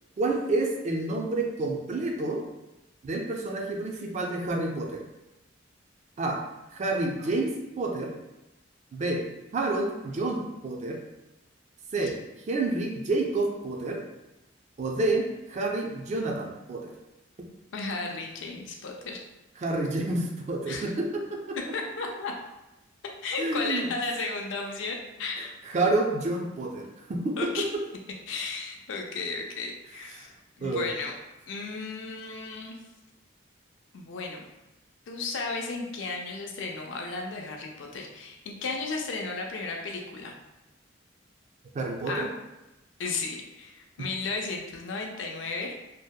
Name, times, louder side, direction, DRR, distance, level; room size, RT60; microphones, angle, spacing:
voice 1, 0.2-2.5 3.0-5.0 6.2-6.4 6.7-8.1 8.9-9.2 9.5-11.0 11.9-12.1 12.5-14.0 14.8-16.9 19.6-21.6 23.4-23.9 25.4-27.6 30.1-30.3 30.6-30.9 41.7-42.3, right 2 dB, 35° right, 1 dB, 0.3 m, -29 dB
voice 2, 17.7-19.2 20.7-20.9 21.7-22.3 23.2-25.5 27.4-27.7 28.3-30.3 30.6-31.1 31.5-32.7 33.9-34.4 35.1-40.4 42.1-42.3 43.0-45.8, left 3 dB, 65° left, 1 dB, 0.4 m, -34 dB
2.7 x 2.0 x 2.2 m, 0.99 s
head